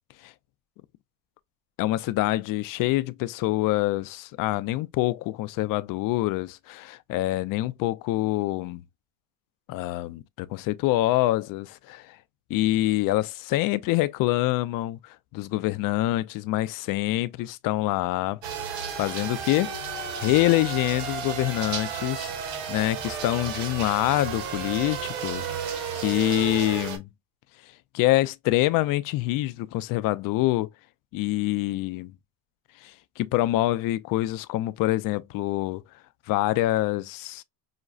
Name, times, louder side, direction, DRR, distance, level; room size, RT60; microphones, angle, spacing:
voice 1, 1.8-8.8 9.7-12.2 12.5-15.0 15.3-18.4 18.7-19.7 20.2-22.3 22.7-25.7 26.0-27.1 27.9-30.7 31.1-32.1 32.8-35.8 36.3-37.4, left 17 dB, 50° left, 0.4 m, -26 dB
sound 1, 18.4-27.0, right 7 dB, 80° right, 1.5 m, -33 dB
5.7 x 2.0 x 2.4 m
cardioid pair, 140°, 43 cm